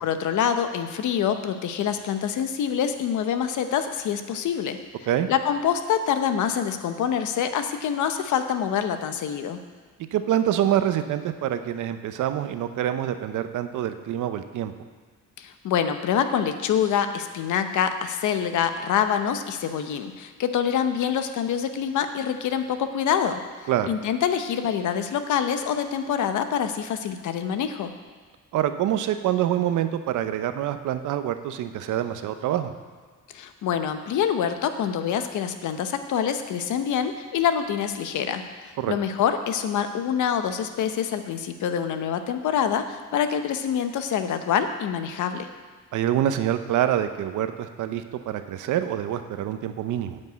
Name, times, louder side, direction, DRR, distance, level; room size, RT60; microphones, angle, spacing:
voice 1, 0.0-4.8 5.3-9.6 15.4-23.4 23.9-27.9 33.3-45.5, left 8 dB, 75° left, 8 dB, 0.9 m, -26 dB
voice 2, 10.1-14.7 23.7-23.9 28.5-32.7 38.8-38.9 45.9-50.2, right 11 dB, 80° right, 9 dB, 0.8 m, -26 dB
9.5 x 5.4 x 8.1 m, 1.5 s
cardioid pair, 90°, 30 cm